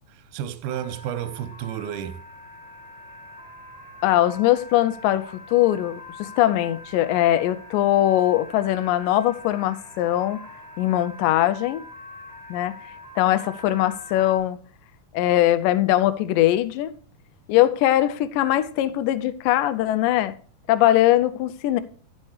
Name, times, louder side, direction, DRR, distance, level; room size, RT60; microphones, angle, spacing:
voice 1, 0.1-2.2, right 10 dB, 80° right, 2.2 m, -32 dB
sound 1, 0.7-14.4, left 1 dB, 65° left, 7.1 m, -43 dB
voice 2, 4.0-10.4 10.8-11.9 12.5-12.7 13.2-14.6 15.1-17.0 17.5-20.4 20.7-21.8, left 14 dB, 85° left, 2.2 m, -21 dB
11.5 x 8.5 x 3.2 m
omnidirectional pair, 3.8 m